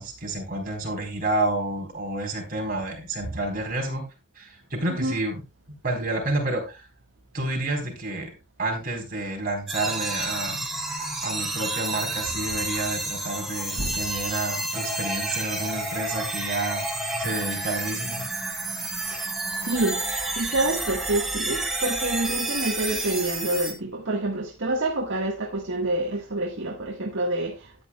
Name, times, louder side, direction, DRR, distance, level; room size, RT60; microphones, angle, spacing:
voice 1, 0.0-4.0 4.4-5.4 5.8-6.8 7.3-8.3 8.6-10.7 11.2-16.9 17.2-18.3, right 2 dB, 45° right, 4.2 m, -29 dB
sound 1, 9.7-23.7, right 2 dB, ahead, 2.3 m, -30 dB
voice 2, 19.1-20.0 20.4-27.8, right 2 dB, 60° right, 1.6 m, -27 dB
13.5 x 9.3 x 2.3 m
head